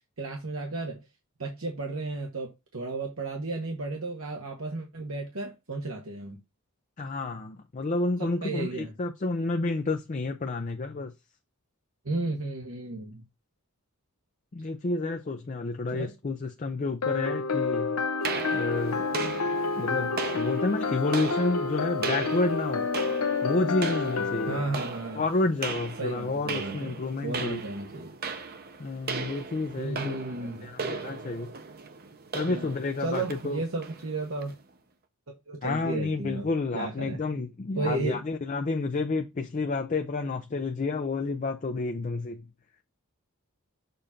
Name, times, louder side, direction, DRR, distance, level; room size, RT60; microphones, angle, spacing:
voice 1, 0.2-1.0 1.4-6.4 8.2-8.9 12.0-13.2 15.9-16.1 24.5-25.3 26.0-28.1 29.8-30.7 32.5-32.7 33.0-34.5 35.5-37.4 37.7-38.2, right 3 dB, 70° right, 1.1 m, -34 dB
voice 2, 7.0-11.1 14.5-18.0 18.5-19.1 19.8-22.9 23.4-24.8 25.1-27.6 28.8-30.1 30.6-31.5 32.3-33.6 35.6-42.5, left 3 dB, 35° left, 0.5 m, -30 dB
sound 1, 17.0-24.6, left 4 dB, 80° left, 0.7 m, -29 dB
sound 2, 18.2-34.6, right 5 dB, 45° right, 0.7 m, -38 dB
6.8 x 2.5 x 5.5 m
head